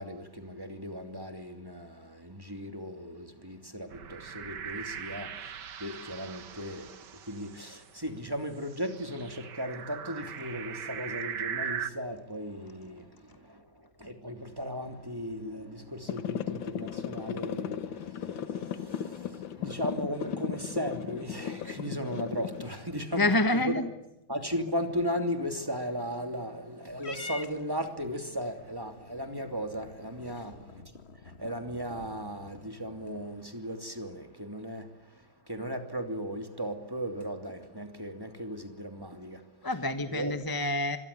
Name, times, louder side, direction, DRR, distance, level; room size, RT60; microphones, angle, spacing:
voice 1, 0.0-23.8 24.3-39.5 40.1-40.4, equal, 10° right, 2.9 m, -37 dB
sound 1, 3.9-7.8 8.7-11.9, right 8 dB, 65° right, 1.9 m, -39 dB
sound 2, 16.1-22.7, left 9 dB, 80° left, 1.9 m, -36 dB
voice 2, 23.1-23.9 39.6-41.0, left 2 dB, 15° left, 1.1 m, -27 dB
Purr / Meow, 27.0-33.5, left 3 dB, 35° left, 1.5 m, -48 dB
26.5 x 23.0 x 8.5 m
omnidirectional pair, 2.1 m